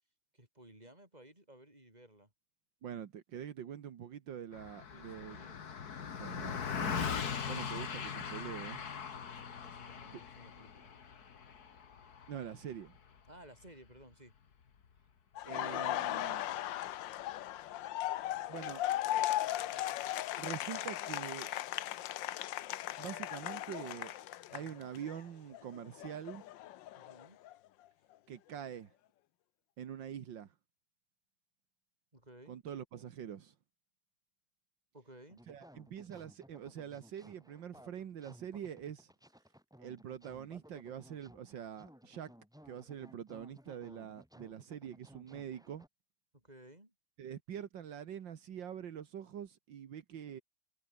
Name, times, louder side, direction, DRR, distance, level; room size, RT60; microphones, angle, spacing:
voice 1, 0.3-2.3 4.9-5.7 9.2-10.9 13.3-14.3 24.5-24.9 27.0-27.4 32.1-32.6 34.9-35.4 46.3-46.9, right 1 dB, 20° right, 7.2 m, -57 dB
voice 2, 2.8-5.4 6.2-7.1 7.4-8.8 10.1-10.2 12.3-12.9 15.5-16.4 18.5-18.8 20.4-21.5 23.0-24.2 24.5-26.4 28.3-28.9 29.8-30.5 32.5-33.5 35.5-39.1 39.8-42.3 42.7-45.9 47.2-50.4, right 9 dB, 80° right, 2.0 m, -45 dB
Car passing by, 4.5-14.1, left 7 dB, 55° left, 2.1 m, -41 dB
Laughter, 15.4-25.2 25.5-27.5, left 14 dB, 85° left, 1.5 m, -37 dB
sound 1, 35.3-45.9, equal, ahead, 6.6 m, -59 dB
omnidirectional pair, 2.0 m